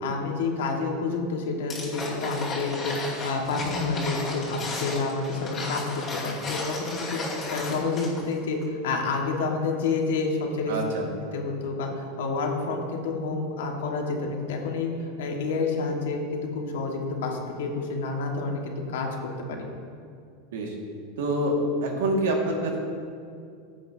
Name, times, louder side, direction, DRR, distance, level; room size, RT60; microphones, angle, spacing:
voice 1, 0.0-7.2 7.5-10.7 11.3-14.9 15.2-19.1 19.5-19.7, left 4 dB, 85° left, 1 dB, 1.7 m, -29 dB
sound 1, 1.7-8.3 8.6-8.7, left 2 dB, 25° left, 2.7 m, -34 dB
voice 2, 10.7-11.1 20.5-20.8 21.2-21.5 21.8-22.8, right 2 dB, 85° right, 0 dB, 2.0 m, -26 dB
15.5 x 8.5 x 2.8 m, 2.4 s
supercardioid pair, 150°, 0 cm